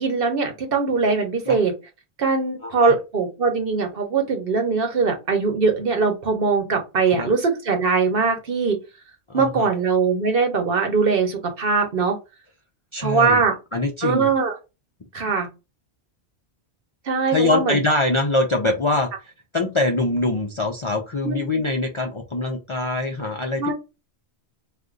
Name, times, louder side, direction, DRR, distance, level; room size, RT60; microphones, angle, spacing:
voice 1, 0.0-1.7 2.2-8.8 9.3-12.2 13.0-13.5 14.0-14.5 15.1-15.5 17.1-17.8 21.2-21.4 23.6-23.7, right 4 dB, 60° right, 4 dB, 1.0 m, -21 dB
voice 2, 2.6-3.0 7.1-7.3 9.3-9.7 12.9-13.4 13.7-14.3 17.3-23.7, left 2 dB, 45° left, 1 dB, 0.4 m, -24 dB
2.5 x 2.5 x 3.6 m, 0.27 s
omnidirectional pair, 1.1 m